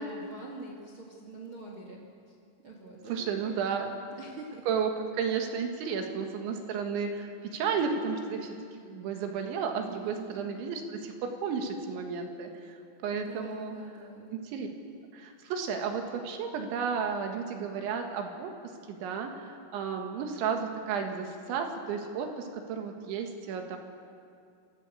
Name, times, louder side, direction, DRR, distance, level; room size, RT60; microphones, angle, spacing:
voice 1, 0.0-2.3 2.6-4.7 9.8-10.4 13.3-14.4, right 2 dB, 50° right, -1 dB, 1.6 m, -45 dB
voice 2, 3.1-3.9 4.7-8.6 8.9-12.8 13.0-13.8 14.3-14.7 15.1-23.8, right 6 dB, 70° right, 4 dB, 3.9 m, -33 dB
25.5 x 13.5 x 8.4 m, 2.3 s
omnidirectional pair, 5.7 m